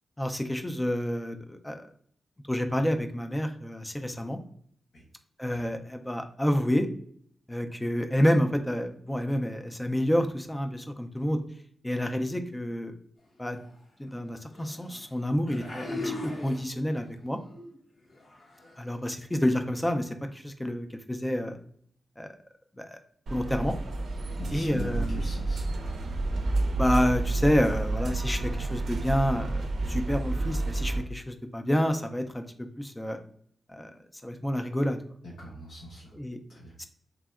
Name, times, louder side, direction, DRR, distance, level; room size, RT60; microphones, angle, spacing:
voice 1, 0.2-1.8 2.5-4.4 5.4-6.9 7.5-11.4 11.8-12.9 13.4-13.6 14.0-17.4 18.8-21.6 22.2-22.4 22.8-23.0 23.3-23.8 24.5-25.2 26.8-29.6 29.9-33.2 33.7-33.9 34.2-35.0 36.1-36.4 36.8-36.9, equal, 10° left, 7 dB, 0.3 m, -28 dB
sound 1, 13.6-13.7 14.5-15.1 15.5-17.1 17.5-17.7 18.1-18.8 19.5-19.6, left 2 dB, 50° left, 0.7 m, -39 dB
sound 2, 23.3-31.0, right 2 dB, 70° right, 0.4 m, -30 dB
voice 2, 24.4-25.6 35.2-36.1 36.5-36.7, left 1 dB, 75° left, -5 dB, 1.0 m, -41 dB
3.5 x 2.1 x 2.3 m, 0.62 s
wide cardioid pair, 125°, 0 cm